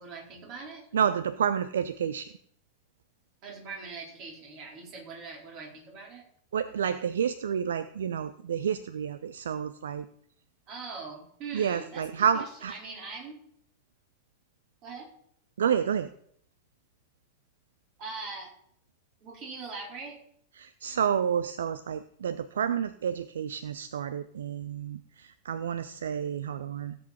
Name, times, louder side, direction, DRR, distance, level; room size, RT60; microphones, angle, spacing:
voice 1, 0.0-0.9 3.4-6.2 10.7-12.1 12.3-13.4 14.8-15.1 18.0-18.5 19.2-20.2, right 4 dB, 40° right, -1 dB, 4.5 m, -41 dB
voice 2, 0.9-2.3 6.5-10.1 11.5-12.7 15.6-16.1 20.6-27.0, right 8 dB, 65° right, 14 dB, 0.5 m, -29 dB
16.5 x 8.0 x 4.4 m, 0.65 s
figure-of-eight pair, 90°, 0 cm